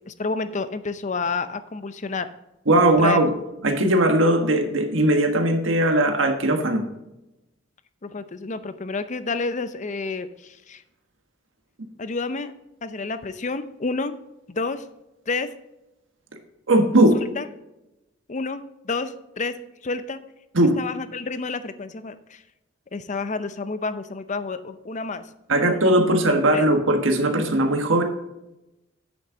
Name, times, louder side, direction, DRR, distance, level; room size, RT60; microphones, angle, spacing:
voice 1, 0.1-2.3 3.0-3.2 8.0-10.8 12.0-12.5 12.8-14.1 14.5-14.8 15.3-15.5 17.1-17.5 18.3-20.2 20.8-22.4 22.9-25.8 26.5-26.7, left 3 dB, 40° left, 12 dB, 0.6 m, -30 dB
voice 2, 2.7-3.3 3.6-6.8 16.7-17.1 20.5-20.8 25.5-28.0, right 1 dB, 85° right, 5 dB, 1.4 m, -19 dB
8.9 x 7.2 x 3.8 m, 0.93 s
head